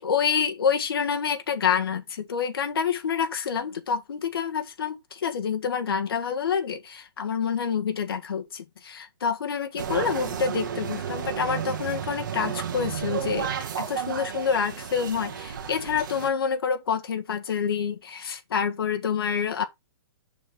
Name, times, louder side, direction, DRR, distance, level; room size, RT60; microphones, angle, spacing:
voice 1, 0.0-19.6, left 6 dB, 65° left, 1.5 m, -27 dB
sound 1, 9.8-16.3, right 8 dB, 50° right, 1.8 m, -32 dB
6.6 x 6.0 x 3.9 m
hypercardioid pair, 175°, 13 cm